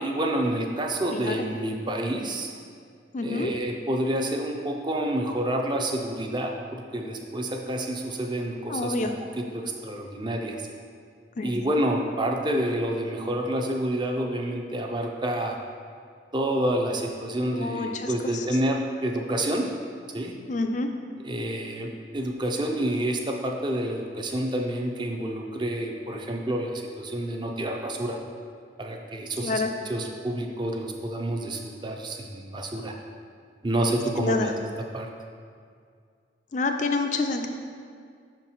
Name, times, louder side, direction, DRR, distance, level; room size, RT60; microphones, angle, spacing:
voice 1, 0.0-2.5 3.2-9.1 9.4-10.7 11.4-15.6 16.3-19.7 20.1-20.3 21.2-28.2 28.8-32.9 33.6-34.5 34.9-35.1, right 1 dB, 25° right, 2 dB, 0.5 m, -28 dB
voice 2, 3.1-3.5 8.7-9.1 11.4-11.5 17.5-18.4 20.5-20.9 29.4-29.7 34.2-34.5 36.5-37.5, left 3 dB, 40° left, 5 dB, 0.4 m, -28 dB
5.7 x 4.5 x 5.6 m, 2.2 s
head